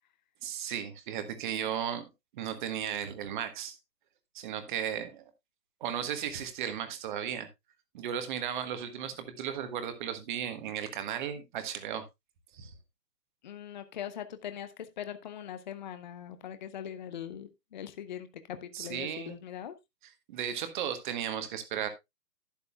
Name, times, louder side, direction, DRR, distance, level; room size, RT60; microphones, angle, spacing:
voice 1, 0.4-2.1 2.3-3.8 4.3-5.2 5.8-7.5 7.9-12.0 12.5-12.7 18.7-19.4 20.3-21.9, right 9 dB, 30° right, 1.5 m, -35 dB
voice 2, 13.4-19.8, left 9 dB, 30° left, 0.7 m, -41 dB
12.0 x 9.7 x 2.3 m
figure-of-eight pair, 140°, 48 cm